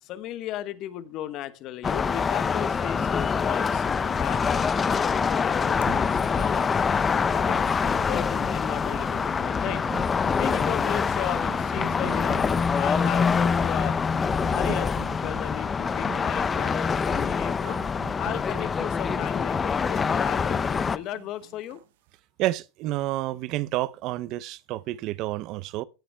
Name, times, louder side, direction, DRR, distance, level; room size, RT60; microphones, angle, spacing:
voice 1, 0.0-6.7 7.3-9.8 10.4-12.4 12.7-14.0 14.5-14.9 15.2-17.8 18.2-21.8, left 13 dB, 50° left, 1.2 m, -35 dB
sound 1, 1.8-21.0, left 5 dB, 20° left, 0.6 m, -25 dB
sound 2, 5.6-21.9, right 14 dB, 80° right, 1.0 m, -45 dB
sound 3, 7.3-12.7, right 10 dB, 35° right, 2.2 m, -48 dB
voice 2, 22.4-25.8, right 16 dB, 55° right, 0.6 m, -29 dB
17.5 x 8.5 x 2.2 m
supercardioid pair, 120°, 0 cm